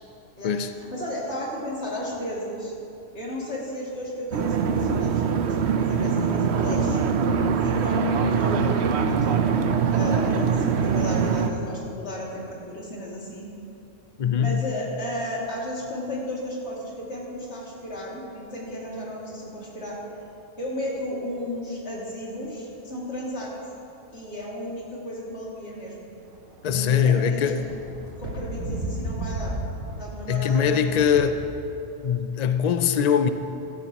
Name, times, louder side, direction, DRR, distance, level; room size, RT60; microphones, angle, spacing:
voice 1, 0.9-2.7 3.1-7.0 7.6-13.5 14.3-20.0 20.6-23.5 24.1-26.1 26.6-27.5 28.2-29.5 30.0-31.0, equal, 55° left, -5 dB, 2.8 m, -34 dB
sound 1, 4.3-11.5, right 6 dB, 60° right, 0.8 m, -23 dB
voice 2, 14.2-14.6 26.6-27.6 30.3-31.3 32.0-33.3, left 7 dB, 80° left, 9 dB, 0.3 m, -22 dB
sound 2, 26.4-26.5 26.9-31.5, right 1 dB, 85° right, 1.5 m, -34 dB
15.0 x 13.5 x 3.0 m, 2.8 s
omnidirectional pair, 1.3 m